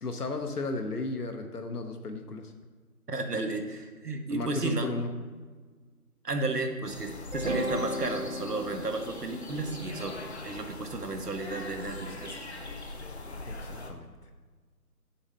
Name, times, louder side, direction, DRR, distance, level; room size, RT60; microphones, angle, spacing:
voice 1, 0.0-2.5 4.3-5.1 13.5-14.1, left 3 dB, 80° left, 5 dB, 0.9 m, -34 dB
voice 2, 3.1-4.9 6.2-10.2 10.4-12.5, right 3 dB, 90° right, 6 dB, 1.2 m, -33 dB
sound 1, 6.8-13.9, left 2 dB, 45° left, 0.8 m, -42 dB
sound 2, 7.3-11.5, equal, 55° right, 0.9 m, -36 dB
7.4 x 7.1 x 3.2 m, 1.5 s
figure-of-eight pair, 160°, 46 cm